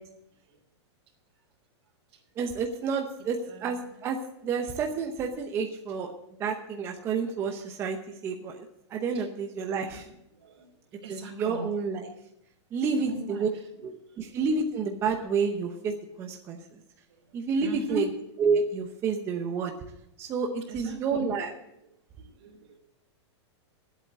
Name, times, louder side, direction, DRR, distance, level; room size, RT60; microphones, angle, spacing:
voice 1, 2.4-4.2 4.4-6.1 6.4-8.6 8.9-10.1 11.1-12.1 12.7-13.5 13.8-16.8 17.3-18.1 18.4-19.7 20.2-21.5, right 5 dB, 15° right, 3 dB, 0.8 m, -29 dB
voice 2, 3.4-3.9 9.1-9.2 9.7-10.0 10.3-10.7 11.0-11.7 12.9-13.5 14.1-14.3 17.1-17.3 17.6-18.0 20.7-21.2 22.2-22.8, right 1 dB, 60° right, -3 dB, 3.1 m, -40 dB
10.5 x 8.2 x 8.7 m, 0.78 s
supercardioid pair, 170°, 15 cm